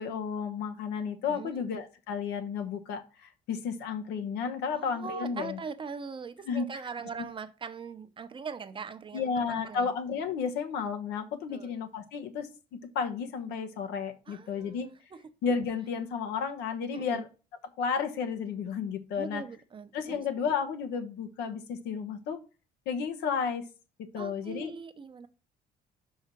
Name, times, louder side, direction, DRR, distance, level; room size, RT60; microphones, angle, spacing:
voice 1, 0.0-5.6 6.5-6.6 9.1-12.5 12.9-14.9 15.4-17.3 17.8-19.4 19.9-22.4 22.9-23.6 24.1-24.7, left 6 dB, 85° left, 1.1 m, -32 dB
voice 2, 1.3-1.6 4.7-9.3 9.6-9.9 11.5-11.8 14.3-15.2 16.9-17.2 19.2-20.2 24.2-25.3, right 5 dB, 30° right, 0.7 m, -41 dB
5.6 x 4.7 x 6.0 m
cardioid pair, 110°, 17 cm